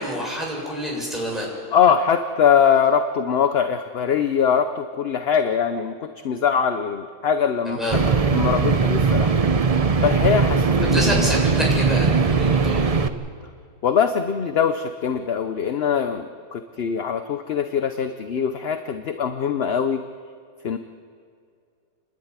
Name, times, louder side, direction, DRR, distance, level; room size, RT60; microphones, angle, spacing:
voice 1, 0.0-1.5 7.7-8.0 10.9-12.8, equal, ahead, -3 dB, 7.2 m, -27 dB
voice 2, 1.7-7.8 8.3-9.3 10.0-11.4 13.8-20.1 20.6-20.8, left 7 dB, 50° left, 8 dB, 0.8 m, -22 dB
sound 1, 7.9-13.1, right 5 dB, 35° right, 0.6 m, -20 dB
29.5 x 11.5 x 9.7 m, 2.3 s
omnidirectional pair, 1.6 m